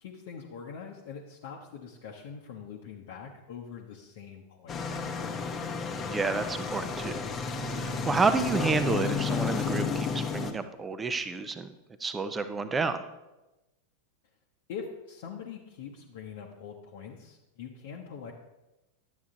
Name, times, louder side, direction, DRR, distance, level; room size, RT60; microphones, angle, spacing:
voice 1, 0.0-5.1 14.7-18.3, left 6 dB, 55° left, -1 dB, 1.0 m, -43 dB
sound 1, 4.7-10.5, left 5 dB, 25° left, 1.1 m, -32 dB
voice 2, 6.1-7.3 7.7-11.7 12.0-13.0, right 4 dB, 15° right, 10 dB, 0.7 m, -30 dB
11.5 x 8.4 x 3.8 m, 1.0 s
figure-of-eight pair, 90°, 0 cm